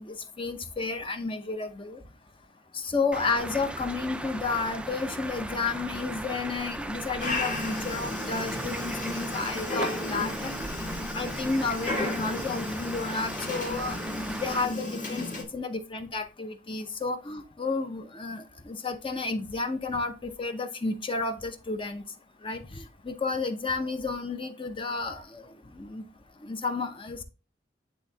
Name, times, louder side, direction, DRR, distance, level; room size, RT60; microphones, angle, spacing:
voice 1, 0.1-2.0 2.7-10.5 11.1-22.0 22.4-25.4 25.8-26.0 26.4-27.2, left 3 dB, 30° left, 0.7 m, -32 dB
sound 1, 3.1-14.7, right 1 dB, 5° right, 0.4 m, -37 dB
Dog, 7.2-15.4, left 2 dB, 50° left, 1.8 m, -34 dB
10.0 x 3.4 x 2.8 m
head